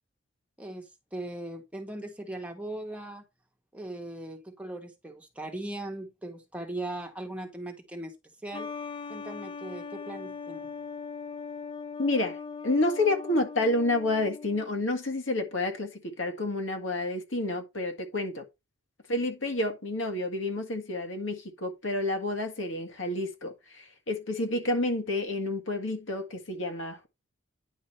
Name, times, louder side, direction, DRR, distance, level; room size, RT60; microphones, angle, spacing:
voice 1, 0.6-3.2 3.7-8.1 8.4-8.7 9.1-10.7, right 1 dB, 5° right, 1.5 m, -39 dB
sound 1, 8.5-14.8, left 5 dB, 25° left, 0.5 m, -40 dB
voice 2, 12.0-18.5 19.1-27.1, left 2 dB, 75° left, 1.7 m, -29 dB
10.0 x 5.0 x 4.3 m
head